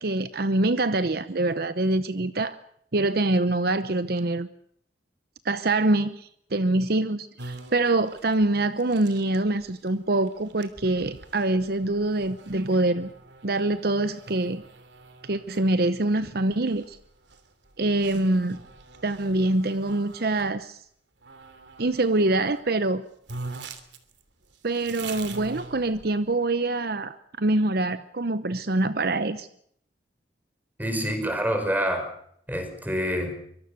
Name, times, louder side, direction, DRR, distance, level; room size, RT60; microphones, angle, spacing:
voice 1, 0.0-2.6 2.9-4.5 5.4-13.1 13.4-14.6 15.2-17.0 17.8-18.6 19.0-20.8 21.8-23.0 24.6-29.5, right 2 dB, 60° right, 12 dB, 0.9 m, -25 dB
sound 1, 7.4-20.5 21.2-22.7 22.9-23.0 23.3-26.4, right 3 dB, 90° right, 3.0 m, -44 dB
voice 2, 30.8-32.1 32.5-33.3, equal, 10° right, 6 dB, 5.2 m, -26 dB
24.5 x 23.0 x 6.7 m, 0.69 s
head